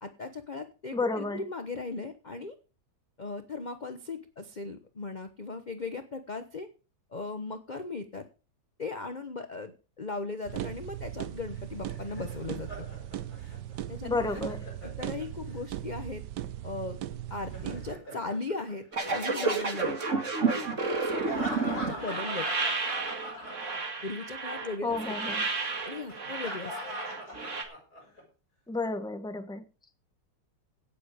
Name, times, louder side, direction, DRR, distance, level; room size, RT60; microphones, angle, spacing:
voice 1, 0.0-2.5 3.2-6.7 7.1-8.2 8.8-12.9 13.9-14.4 15.0-16.2 16.6-17.0 17.3-20.0 20.5-22.5 24.0-25.4 25.8-26.8, left 3 dB, 30° left, 8 dB, 0.9 m, -38 dB
voice 2, 0.9-1.4 14.0-14.7 24.8-25.5 28.7-29.6, left 3 dB, 5° left, 8 dB, 1.1 m, -31 dB
sound 1, 10.4-18.0, right 12 dB, 70° right, 1.3 m, -38 dB
Laughter, 11.5-15.6 17.3-19.4 21.1-24.2 24.5-24.6 26.1-28.2, equal, 55° left, 7.2 m, -42 dB
sound 2, 18.9-27.6, right 4 dB, 40° right, 2.5 m, -31 dB
17.5 x 7.7 x 5.1 m, 0.34 s
omnidirectional pair, 2.0 m